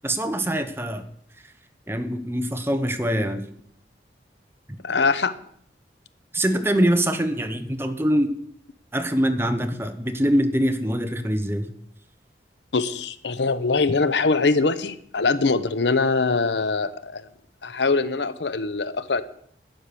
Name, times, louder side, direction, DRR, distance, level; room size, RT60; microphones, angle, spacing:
voice 1, 0.0-1.0 1.9-3.4 6.3-8.3 8.9-11.7, equal, 15° right, 7 dB, 1.1 m, -23 dB
voice 2, 4.8-5.3 12.7-17.3 17.6-19.2, left 4 dB, 80° left, 13 dB, 0.9 m, -23 dB
12.0 x 9.8 x 6.9 m, 0.66 s
head